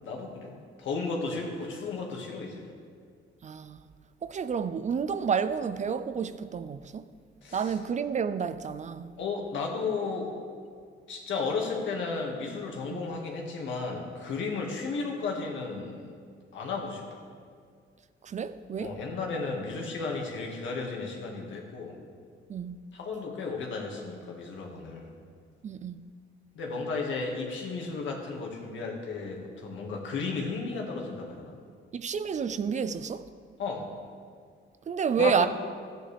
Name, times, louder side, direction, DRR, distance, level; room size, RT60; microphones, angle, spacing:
voice 1, 0.0-0.5 0.8-2.7 7.4-7.8 9.2-10.4 11.1-16.0 16.5-17.0 18.8-22.0 22.9-25.0 26.6-31.6 33.6-33.9 35.2-35.5, left 4 dB, 75° left, 1.9 m, -34 dB
voice 2, 3.4-3.8 4.2-7.1 7.5-9.2 12.9-13.1 18.2-18.9 22.5-22.8 25.6-26.0 31.9-33.3 34.9-35.5, right 6 dB, 35° right, 0.4 m, -30 dB
14.0 x 9.0 x 3.4 m
cardioid pair, 90°, 20 cm